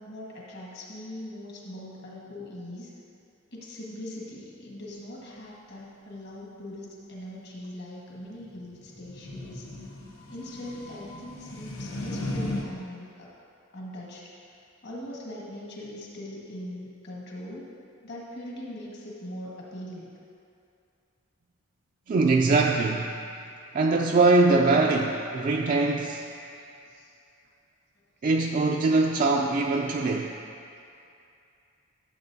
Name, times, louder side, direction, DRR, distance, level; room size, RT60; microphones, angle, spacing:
voice 1, 0.0-2.9 3.5-9.7 10.3-13.3 13.7-14.5 14.8-17.7 18.0-20.1 23.4-23.5 25.5-25.9 26.3-27.1 30.1-30.3, left 1 dB, 55° left, -4 dB, 1.5 m, -41 dB
sound 1, 8.3-12.6, left 1 dB, 80° left, 1.0 m, -36 dB
voice 2, 22.1-23.1 23.7-26.2 28.2-30.3, right 3 dB, 40° right, 0 dB, 0.3 m, -22 dB
12.5 x 7.3 x 2.7 m, 2.6 s
head